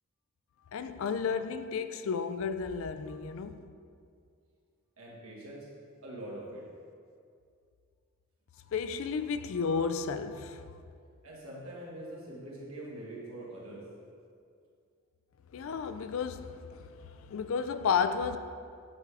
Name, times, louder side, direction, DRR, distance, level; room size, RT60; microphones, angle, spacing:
voice 1, 0.7-3.6 8.7-10.6 15.5-18.4, left 5 dB, 70° left, 0.3 m, -32 dB
voice 2, 5.0-5.7 6.0-6.7 11.2-13.9, right 1 dB, 80° right, 1.7 m, -43 dB
8.3 x 3.4 x 4.8 m
head